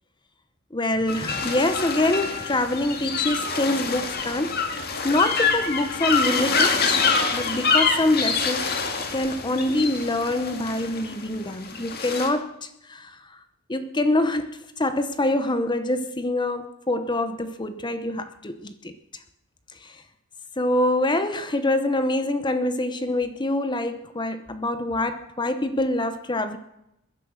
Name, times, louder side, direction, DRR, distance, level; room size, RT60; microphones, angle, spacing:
voice 1, 0.7-7.0 7.3-13.4 13.7-18.9 19.8-20.0 20.6-26.6, left 1 dB, 20° left, 10 dB, 0.9 m, -25 dB
sound 1, 1.1-12.3, left 5 dB, 45° left, 2.2 m, -26 dB
20.0 x 11.0 x 6.4 m, 0.84 s
head